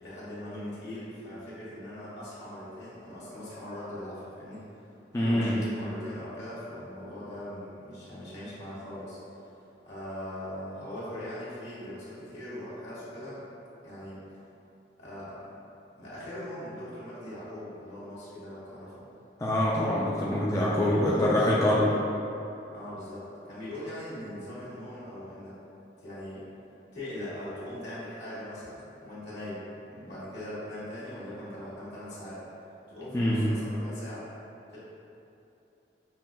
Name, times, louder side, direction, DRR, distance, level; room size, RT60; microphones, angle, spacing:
voice 1, 0.0-4.6 5.2-9.5 9.9-13.4 13.8-14.2 15.0-15.4 16.0-19.0 20.6-21.3 21.7-21.9 22.7-25.5 26.0-26.4 26.9-32.4 32.9-34.3 34.7-34.8, left 1 dB, 75° left, -10 dB, 1.4 m, -40 dB
voice 2, 5.1-5.6 19.4-21.9 33.1-33.4, left 1 dB, 15° left, -7 dB, 0.3 m, -24 dB
5.6 x 2.4 x 2.2 m, 2.9 s
head